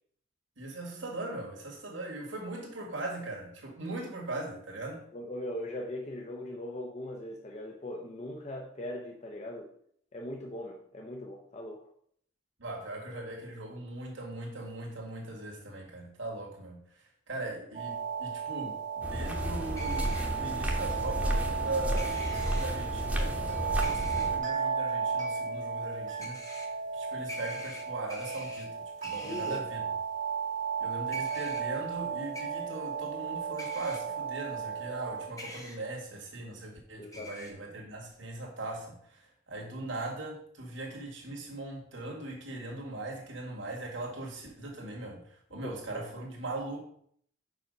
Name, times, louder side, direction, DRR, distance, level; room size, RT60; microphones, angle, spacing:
voice 1, 0.6-5.0 12.6-26.6 26.9-29.8 30.8-46.8, right 2 dB, 70° right, -1 dB, 1.8 m, -40 dB
voice 2, 5.1-9.7 10.1-11.9 29.2-29.7 37.0-37.4 45.6-46.1, left 1 dB, 35° left, 1 dB, 0.7 m, -40 dB
sound 1, 17.7-35.3, right 6 dB, 40° right, 1.0 m, -34 dB
sound 2, 19.0-24.4, equal, 5° right, 1.0 m, -32 dB
sound 3, 19.7-20.2 22.0-22.7 23.8-24.3 26.2-26.7 27.3-28.7 29.0-29.6 31.1-31.6 32.3-32.4 33.6-34.0 35.4-35.8 37.1-37.5, left 1 dB, 15° left, 1.0 m, -44 dB
5.8 x 5.0 x 5.2 m, 0.65 s
head